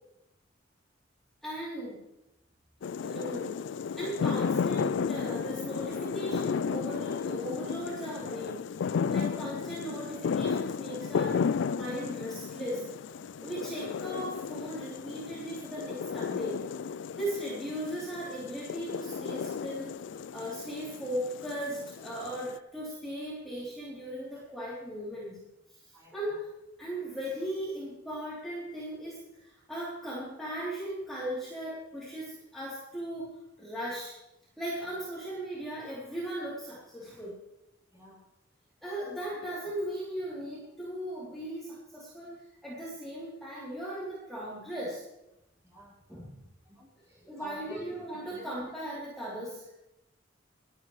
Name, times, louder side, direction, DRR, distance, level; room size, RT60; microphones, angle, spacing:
voice 1, 1.4-2.0 3.0-3.7 4.0-8.7 9.1-11.5 11.7-12.9 13.4-16.7 17.2-19.9 20.3-25.4 25.9-26.5 26.8-33.3 33.6-34.1 34.6-37.4 38.8-45.0 46.1-46.4 47.2-49.7, right 1 dB, ahead, -9 dB, 3.3 m, -38 dB
sound 1, 2.8-22.6, left 6 dB, 65° left, 0.3 m, -33 dB
voice 2, 45.6-45.9 46.7-47.9 48.3-48.5, equal, 15° right, -6 dB, 4.9 m, -50 dB
25.5 x 9.2 x 3.2 m, 0.89 s
head